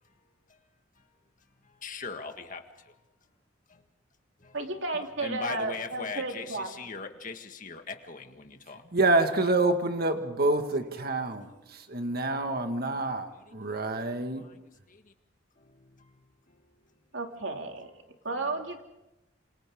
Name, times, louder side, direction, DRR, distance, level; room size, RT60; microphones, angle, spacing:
voice 1, 1.8-2.9 3.7-3.8 4.4-4.6 5.2-8.9 11.3-11.4 12.5-13.0 13.5-14.0 14.4-14.5 14.9-15.1 15.6-16.1 16.5-16.6, left 4 dB, 45° left, 5 dB, 1.8 m, -41 dB
voice 2, 4.5-6.7 17.1-17.9 18.2-18.8, right 2 dB, 75° right, 3 dB, 2.7 m, -33 dB
voice 3, 8.9-14.5, right 2 dB, 50° right, 6 dB, 1.9 m, -27 dB
27.5 x 27.5 x 3.8 m, 0.92 s
head